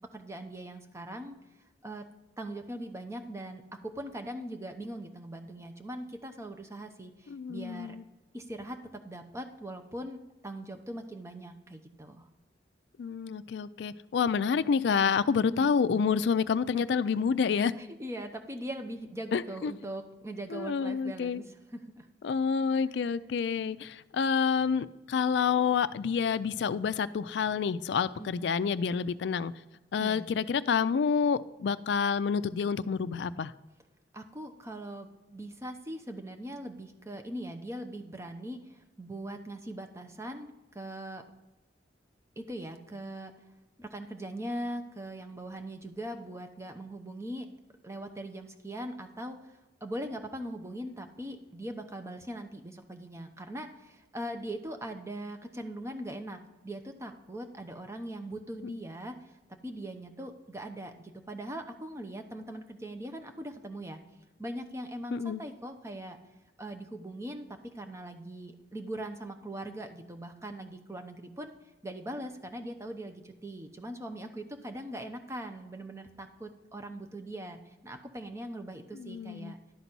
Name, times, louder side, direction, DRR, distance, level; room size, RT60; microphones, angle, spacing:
voice 1, 0.1-1.4 1.8-2.1 2.4-8.0 8.3-12.3 15.5-15.7 16.8-16.9 17.8-22.1 28.2-28.4 30.0-30.3 34.1-41.3 42.4-43.3 43.8-47.5 47.8-59.3 59.6-64.0 64.4-66.2 66.6-71.5 71.8-79.6, right 1 dB, 15° right, 6 dB, 0.7 m, -41 dB
voice 2, 7.3-8.0 13.0-17.7 19.3-19.7 20.5-21.4 22.2-29.5 29.9-33.5 58.6-58.7 65.1-65.4 78.9-79.5, left 6 dB, 65° left, 15 dB, 0.3 m, -28 dB
11.0 x 4.0 x 6.0 m, 1.1 s
head